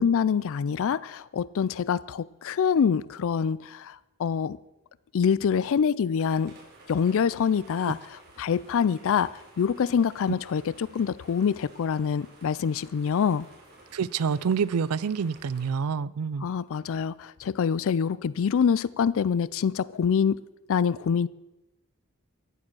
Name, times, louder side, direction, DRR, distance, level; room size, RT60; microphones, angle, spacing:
voice 1, 0.0-4.6 5.1-6.6 6.9-13.5 16.4-20.4 20.7-21.3, left 7 dB, 65° left, 20 dB, 0.4 m, -25 dB
sound 1, 6.2-15.7, right 2 dB, 45° right, 4.9 m, -53 dB
voice 2, 13.9-16.5, right 6 dB, 85° right, 20 dB, 0.5 m, -27 dB
15.0 x 9.8 x 6.2 m, 0.99 s
head